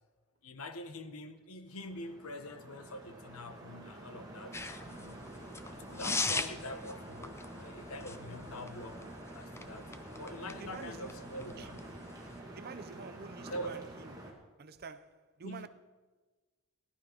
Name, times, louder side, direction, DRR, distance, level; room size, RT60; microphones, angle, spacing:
voice 1, 0.4-5.2 5.7-9.1 9.3-9.9 10.2-11.8 13.5-13.9 15.4-15.7, left 1 dB, 70° left, 1.1 m, -45 dB
sound 1, 1.7-14.3, right 1 dB, 15° right, 2.3 m, -48 dB
sound 2, 4.5-12.4, left 3 dB, 10° left, 0.5 m, -41 dB
voice 2, 10.6-11.1 11.6-11.7 12.6-14.1 14.6-15.7, right 5 dB, 45° right, 0.7 m, -48 dB
17.0 x 11.5 x 5.2 m
head